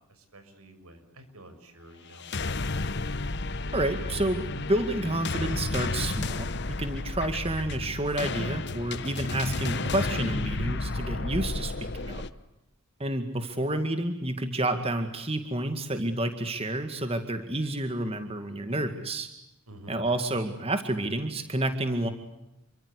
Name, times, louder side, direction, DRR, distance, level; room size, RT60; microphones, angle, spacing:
voice 1, 0.0-2.8 19.7-20.1, right 1 dB, 85° right, 8 dB, 6.1 m, -50 dB
sound 1, 2.1-12.3, left 3 dB, 50° left, 1.1 m, -32 dB
voice 2, 3.7-12.2 13.0-19.3 19.9-22.1, right 1 dB, 25° right, 8 dB, 2.1 m, -30 dB
29.0 x 24.5 x 8.2 m, 0.87 s
head